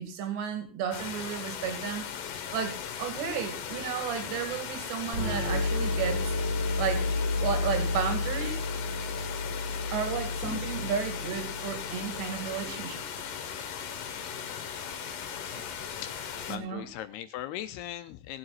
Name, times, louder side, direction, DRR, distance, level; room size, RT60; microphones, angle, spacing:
voice 1, 0.0-2.1 2.5-6.3 6.8-7.1 7.4-8.6 9.9-13.0 16.5-16.9, right 7 dB, 80° right, 6 dB, 4.4 m, -33 dB
sound 1, 0.9-16.6, left 8 dB, 60° left, 2.6 m, -38 dB
sound 2, 5.1-12.7, left 2 dB, 30° right, 3.2 m, -31 dB
sound 3, 10.4-10.6 12.0-16.4, left 3 dB, 5° right, 1.7 m, -49 dB
voice 2, 16.0-18.4, left 12 dB, 80° left, 11 dB, 2.6 m, -39 dB
19.0 x 7.9 x 4.1 m, 0.37 s
omnidirectional pair, 4.9 m